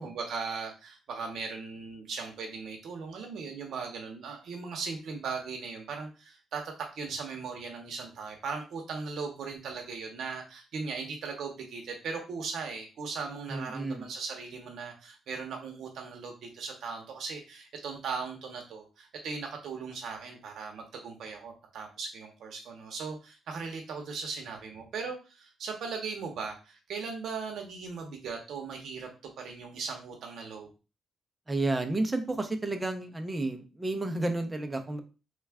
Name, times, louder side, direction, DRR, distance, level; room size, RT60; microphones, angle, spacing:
voice 1, 0.0-30.7, right 5 dB, 70° right, 2 dB, 0.7 m, -38 dB
voice 2, 13.5-14.0 31.5-35.0, right 2 dB, 15° right, 6 dB, 0.5 m, -31 dB
3.2 x 2.3 x 3.4 m, 0.31 s
cardioid pair, 135°, 0 cm